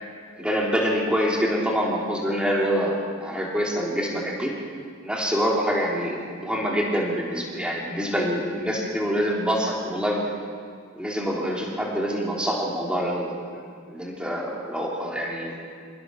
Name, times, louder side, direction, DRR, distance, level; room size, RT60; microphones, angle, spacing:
voice 1, 0.4-4.5 5.0-10.2 10.9-13.3 13.9-15.5, equal, 5° right, -3 dB, 3.4 m, -26 dB
27.0 x 15.0 x 6.4 m, 2.1 s
head